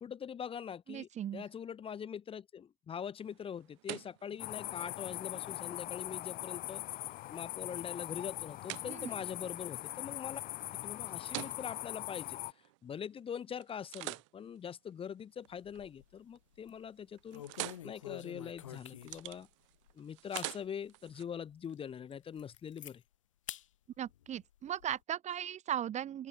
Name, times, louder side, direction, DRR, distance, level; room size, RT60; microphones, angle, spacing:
voice 1, 0.0-7.0 7.3-10.4 10.8-12.4 12.8-17.4 17.8-19.5 20.0-23.0, left 8 dB, 35° left, 0.7 m, -43 dB
voice 2, 0.9-1.4 8.9-9.1 24.0-26.3, right 10 dB, 45° right, 1.1 m, -38 dB
sound 1, 3.2-13.2 13.6-15.9 16.3-16.7 17.0-21.2, right 24 dB, 80° right, 0.8 m, -49 dB
sound 2, 4.4-12.5, left 16 dB, 60° left, 2.1 m, -41 dB
sound 3, 15.5-16.2 16.5-16.8 17.3-19.4 19.9-20.0 20.3-20.6 21.1-21.2 21.7-21.8 22.1-22.9 23.5-23.6 24.0-25.0, left 11 dB, 90° left, 3.0 m, -47 dB
open air
hypercardioid pair, 65°, 16 cm